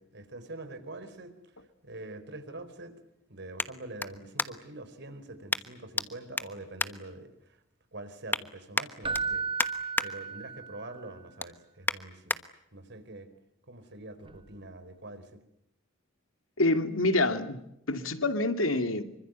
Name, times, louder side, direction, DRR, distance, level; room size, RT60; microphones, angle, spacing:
voice 1, 0.0-1.3 1.8-3.0 3.3-7.6 7.9-9.7 10.0-12.4 12.7-13.3 13.7-15.4, right 2 dB, 60° right, 4.5 m, -45 dB
sound 1, 0.7-4.8 5.5-6.1 6.3-7.7 8.0-8.4 8.7-10.1 10.5-10.8 11.1-12.4 13.0-13.1, left 2 dB, 10° left, 1.2 m, -34 dB
Keyboard (musical), 9.0-11.0 14.3-14.4, right 5 dB, 25° right, 1.1 m, -34 dB
voice 2, 16.6-19.0, left 2 dB, 80° left, 2.5 m, -27 dB
26.0 x 25.0 x 8.2 m
head